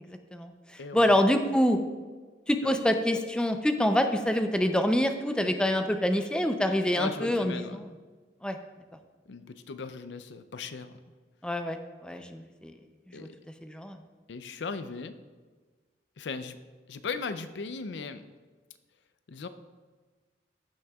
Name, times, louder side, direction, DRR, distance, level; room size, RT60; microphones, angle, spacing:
voice 1, 0.1-1.8 2.5-7.9 8.4-8.6 11.4-12.7 13.1-13.3 13.6-14.0, left 1 dB, 5° left, 6 dB, 0.5 m, -26 dB
voice 2, 0.8-1.1 2.6-2.7 7.0-7.8 9.3-11.0 13.1-13.4 14.3-15.1 16.2-16.6 16.9-18.2 19.3-19.5, left 4 dB, 90° left, 11 dB, 0.5 m, -37 dB
14.5 x 6.2 x 2.3 m, 1.4 s
head